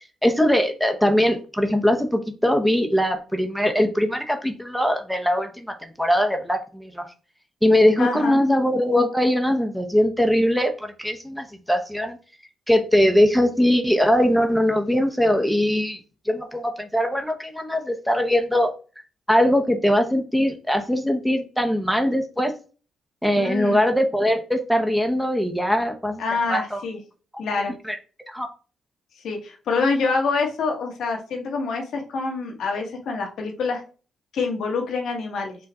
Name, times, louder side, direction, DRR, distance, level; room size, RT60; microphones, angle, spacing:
voice 1, 0.2-7.1 7.6-12.2 12.7-16.0 16.3-18.7 19.3-22.5 23.2-26.2 26.5-26.8 27.8-28.0 28.3-28.5, equal, ahead, 5 dB, 0.8 m, -21 dB
voice 2, 8.0-8.4 23.3-23.8 26.2-27.0 27.4-27.7 29.2-33.8 34.3-35.6, left 4 dB, 70° left, 2 dB, 1.2 m, -26 dB
4.6 x 2.5 x 4.2 m, 0.36 s
supercardioid pair, 65°, 0 cm